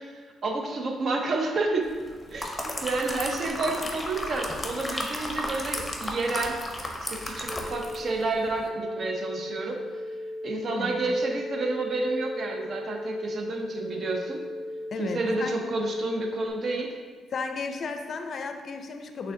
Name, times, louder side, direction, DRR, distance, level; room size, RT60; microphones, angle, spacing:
voice 1, 0.0-1.9 2.3-6.6 7.1-10.0 10.4-14.4 15.0-16.9, right 3 dB, 50° right, 2 dB, 0.6 m, -30 dB
sound 1, 2.1-8.1 8.4-8.6, left 1 dB, 15° left, 0.7 m, -34 dB
sound 2, 7.5-16.5, left 1 dB, 20° right, 0.8 m, -37 dB
voice 2, 14.9-15.6 17.3-19.3, left 4 dB, 50° left, 6 dB, 0.4 m, -34 dB
6.1 x 3.3 x 2.6 m, 1.5 s
cardioid pair, 90°, 0 cm